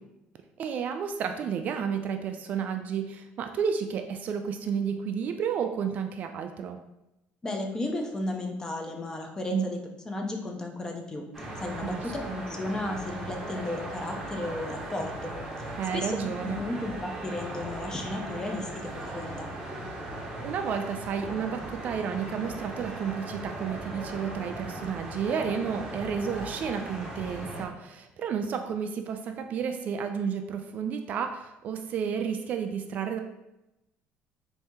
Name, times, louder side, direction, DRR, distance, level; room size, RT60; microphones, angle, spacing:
voice 1, 0.6-6.8 9.5-9.7 11.8-12.3 15.8-16.6 20.4-33.2, right 7 dB, 45° right, 6 dB, 0.3 m, -31 dB
voice 2, 7.4-11.2 11.6-15.7 15.9-16.1 16.4-19.5, left 2 dB, 15° left, 2 dB, 0.5 m, -34 dB
sound 1, 11.3-27.6, right 1 dB, 10° right, 0.8 m, -38 dB
4.2 x 2.6 x 3.6 m, 0.93 s
cardioid pair, 150°, 4 cm